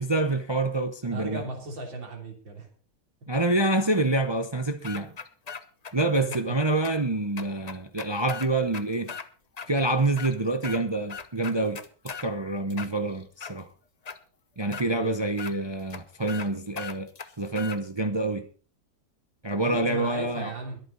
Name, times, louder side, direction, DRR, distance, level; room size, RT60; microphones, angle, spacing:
voice 1, 0.0-1.4 3.3-5.1 5.9-9.1 9.7-13.7 14.6-17.1 17.4-18.5 19.4-20.5, right 2 dB, 40° right, 0.4 m, -27 dB
voice 2, 1.0-2.7 6.2-6.6 14.8-15.3 19.6-20.8, right 1 dB, 85° right, 4.1 m, -36 dB
sound 1, 4.8-5.9 6.3-6.4 6.8-6.9 7.4-9.3 9.6-9.7 10.1-10.8 11.1-12.3 12.7-13.5 14.1-14.2 14.7-14.9 15.4-15.5 15.9-16.0 16.3-16.5 16.8-17.8, left 6 dB, 65° left, 0.4 m, -38 dB
22.0 x 9.0 x 4.0 m
omnidirectional pair, 2.0 m